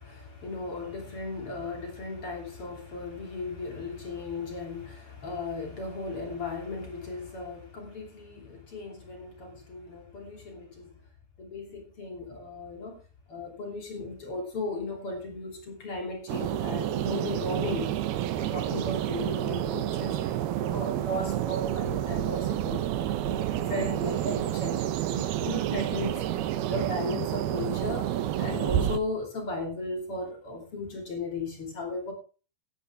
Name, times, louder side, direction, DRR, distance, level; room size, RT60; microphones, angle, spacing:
voice 1, 0.0-11.0 11.4-13.0 13.3-17.9 18.3-22.8 23.2-26.2 26.6-28.1 28.4-32.1, left 2 dB, 35° left, 3.1 m, -36 dB
sound 1, 16.3-29.0, right 12 dB, 85° right, 2.2 m, -29 dB
16.0 x 10.0 x 3.6 m
omnidirectional pair, 5.9 m